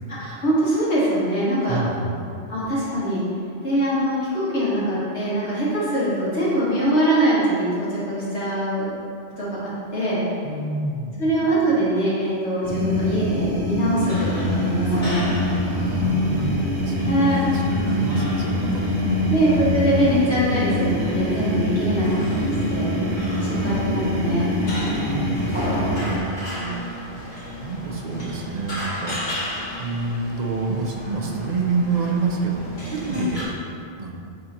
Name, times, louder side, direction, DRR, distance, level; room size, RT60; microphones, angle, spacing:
voice 1, 0.2-1.8 2.5-3.2 3.6-9.0 9.4-10.2 11.2-15.3 17.0-17.4 19.3-22.9 23.4-24.5 26.5-26.8 33.1-33.2, right 1 dB, 75° left, -9 dB, 2.0 m, -23 dB
voice 2, 1.7-2.3 10.4-11.3 15.6-17.1 17.5-19.4 23.3-23.8 24.9-26.2 27.6-29.5 29.8-33.5 33.9-34.1, right 3 dB, 45° right, 0 dB, 0.7 m, -28 dB
sound 1, 12.6-26.2, left 1 dB, 75° right, 1.3 m, -24 dB
sound 2, 14.1-33.4, equal, 45° left, 1.6 m, -34 dB
9.5 x 3.7 x 2.9 m, 2.5 s
omnidirectional pair, 1.2 m